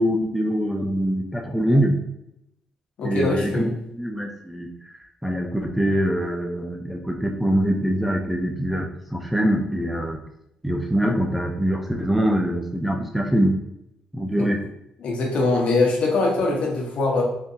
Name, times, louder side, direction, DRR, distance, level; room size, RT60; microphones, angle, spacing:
voice 1, 0.0-2.0 3.0-3.7 3.9-4.7 5.2-10.2 10.6-13.6 14.1-14.6, equal, 5° right, 2 dB, 0.4 m, -23 dB
voice 2, 3.0-3.7 14.4-14.5 15.0-17.2, left 3 dB, 65° left, -1 dB, 0.9 m, -22 dB
3.6 x 2.5 x 2.7 m, 0.79 s
cardioid pair, 115°, 2 cm